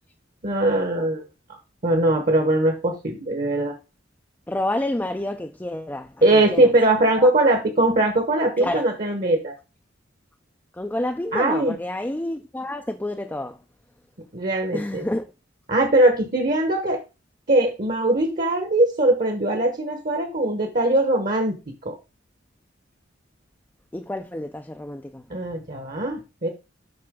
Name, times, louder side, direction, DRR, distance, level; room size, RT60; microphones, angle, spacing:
voice 1, 0.4-1.2 1.8-3.7 6.2-9.5 11.3-11.8 14.3-15.0 15.7-17.0 17.5-21.6 21.8-21.9 25.3-26.5, right 1 dB, 45° right, 1.2 m, -21 dB
voice 2, 4.5-6.7 7.2-7.3 8.6-8.8 10.7-13.6 14.7-15.3 23.9-25.3, left 1 dB, 10° left, 0.4 m, -29 dB
7.8 x 5.7 x 3.7 m
head